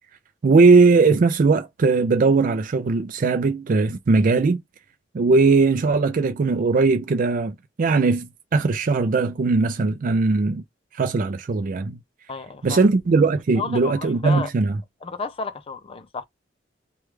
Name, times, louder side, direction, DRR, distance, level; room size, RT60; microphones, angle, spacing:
voice 1, 0.4-4.6 5.1-10.6 10.9-12.0 12.6-14.8, right 4 dB, 45° right, 0.4 m, -19 dB
voice 2, 12.3-12.8 13.5-14.5 15.0-16.2, left 4 dB, 30° left, 0.4 m, -32 dB
3.2 x 2.3 x 3.1 m
head